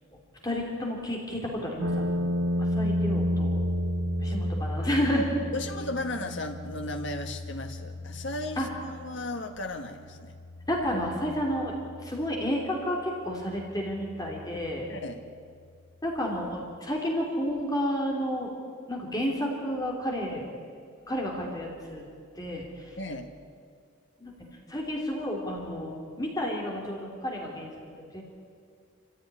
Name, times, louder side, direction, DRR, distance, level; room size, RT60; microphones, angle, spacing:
voice 1, 0.4-2.3 2.7-3.6 4.2-5.3 8.6-8.7 10.7-11.7 12.0-14.9 16.0-18.5 18.9-20.4 21.1-22.0 22.4-22.9 24.2-24.3 24.7-27.7 28.1-28.2, equal, 20° left, -1 dB, 3.2 m, -31 dB
sound 1, 1.8-15.8, equal, 85° right, 1.6 m, -33 dB
voice 2, 5.5-8.7 9.0-10.4 14.9-15.2 23.0-23.3, left 2 dB, 60° left, 6 dB, 1.8 m, -35 dB
25.0 x 15.5 x 9.9 m, 2.2 s
head